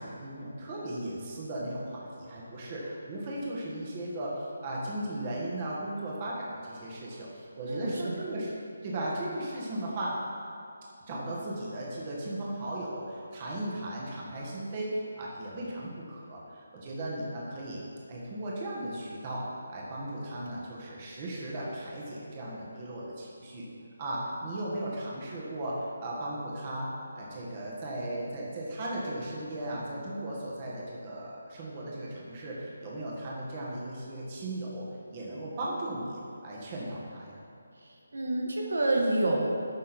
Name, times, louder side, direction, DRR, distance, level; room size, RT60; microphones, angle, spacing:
voice 1, 0.0-8.5 8.8-10.2 11.1-17.8 18.1-23.6 24.0-37.4, right 1 dB, 25° right, -5 dB, 1.7 m, -36 dB
voice 2, 7.7-8.1 38.1-39.4, right 2 dB, 85° right, 0 dB, 1.7 m, -28 dB
10.5 x 6.3 x 4.4 m, 2.5 s
figure-of-eight pair, 165°, 0 cm